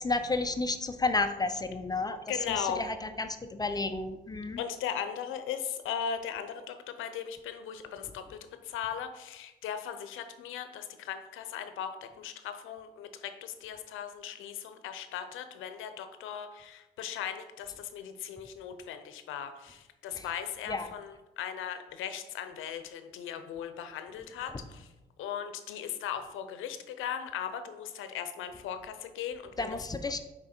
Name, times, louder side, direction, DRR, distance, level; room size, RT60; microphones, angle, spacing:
voice 1, 0.0-2.2 2.6-4.6 20.2-20.3 20.7-20.9 29.6-30.2, left 3 dB, 20° left, 8 dB, 0.5 m, -31 dB
voice 2, 2.3-2.8 4.6-24.9 25.2-29.8, left 8 dB, 85° left, 9 dB, 0.7 m, -38 dB
6.2 x 4.5 x 4.4 m, 1.0 s
cardioid pair, 90°, 20 cm